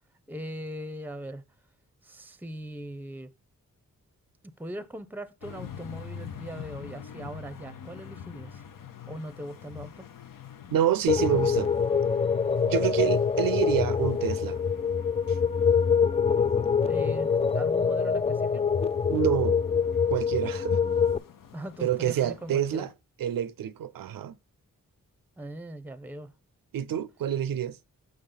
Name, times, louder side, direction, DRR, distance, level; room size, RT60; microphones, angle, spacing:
voice 1, 0.3-1.4 2.0-3.3 4.6-8.6 9.1-10.1 16.8-18.7 21.5-22.9 25.4-26.3, right 1 dB, 5° right, 0.7 m, -40 dB
sound 1, 5.4-22.9, left 8 dB, 65° left, 0.7 m, -46 dB
voice 2, 10.7-11.7 12.7-14.6 15.3-15.4 19.1-19.6 20.1-20.8 21.8-22.9 23.2-24.3 26.7-27.8, right 10 dB, 75° right, 0.6 m, -27 dB
sound 2, 11.1-21.2, left 6 dB, 20° left, 0.3 m, -25 dB
6.5 x 6.1 x 3.8 m
cardioid pair, 40°, 35 cm